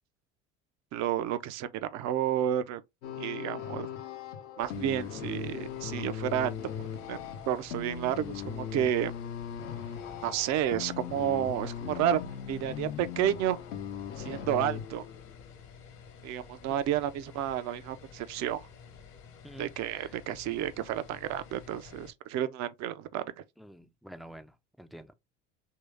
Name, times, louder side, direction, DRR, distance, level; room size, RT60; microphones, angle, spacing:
voice 1, 0.9-2.8 3.2-3.9 4.6-9.1 10.2-12.2 12.5-13.6 14.2-15.0 16.2-18.7 19.6-23.4, right 11 dB, 50° right, 0.6 m, -31 dB
sound 1, 3.0-15.4, left 8 dB, 75° left, 0.8 m, -39 dB
sound 2, 4.6-22.1, left 6 dB, 55° left, 1.1 m, -51 dB
voice 2, 19.4-20.1 23.6-25.1, right 1 dB, ahead, 0.4 m, -49 dB
3.0 x 2.8 x 3.4 m
hypercardioid pair, 70°, 36 cm